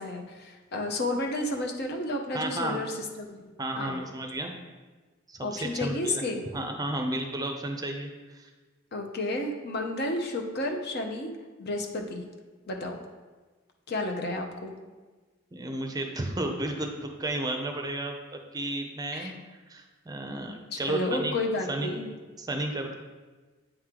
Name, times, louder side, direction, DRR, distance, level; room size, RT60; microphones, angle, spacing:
voice 1, 0.0-4.1 5.4-6.4 8.9-11.3 11.6-12.2 12.7-13.0 13.9-14.7 19.1-19.3 20.7-22.1, left 2 dB, 50° left, 3 dB, 0.7 m, -32 dB
voice 2, 2.3-2.8 3.6-4.5 5.3-6.2 6.5-8.5 15.5-18.2 18.5-21.3 21.7-21.9 22.4-23.0, right 1 dB, 20° right, 3 dB, 0.6 m, -33 dB
8.8 x 3.0 x 3.7 m, 1.3 s
head